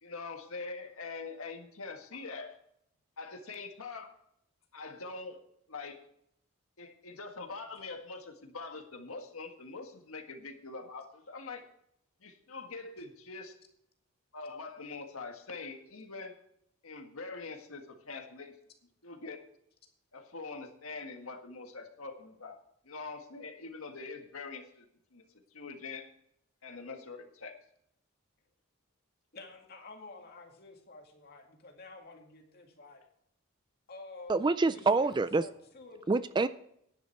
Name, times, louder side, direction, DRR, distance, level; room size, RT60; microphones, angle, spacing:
voice 1, 0.0-2.6 3.2-4.2 4.7-6.0 6.8-11.7 12.2-13.6 14.3-16.4 16.8-18.5 19.0-19.4 20.1-22.6 22.8-25.3 25.5-26.1 26.6-27.5, left 4 dB, 75° left, 1.7 m, -44 dB
voice 2, 29.3-33.0 33.9-34.4 34.7-36.1, left 3 dB, 45° left, 2.2 m, -50 dB
voice 3, 34.3-35.5 36.1-36.5, right 3 dB, 20° right, 0.3 m, -26 dB
10.5 x 10.5 x 4.5 m
head